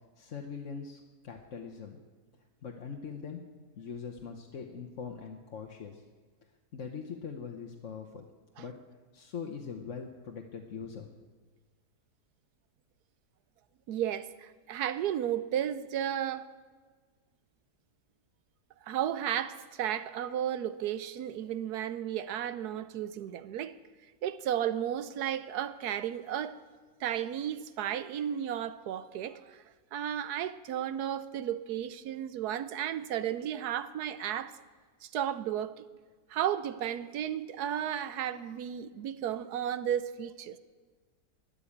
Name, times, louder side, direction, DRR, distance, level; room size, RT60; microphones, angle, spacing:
voice 1, 0.2-2.0 2.6-3.4 3.8-6.0 6.7-8.2 8.6-8.7 9.1-11.1, left 6 dB, 50° left, 1.3 m, -42 dB
voice 2, 13.9-16.5 18.8-23.8 24.2-26.6 27.0-29.6 29.9-34.6 35.0-35.8 36.3-40.5, right 10 dB, 75° right, 1.1 m, -33 dB
13.5 x 10.0 x 8.5 m
omnidirectional pair, 1.8 m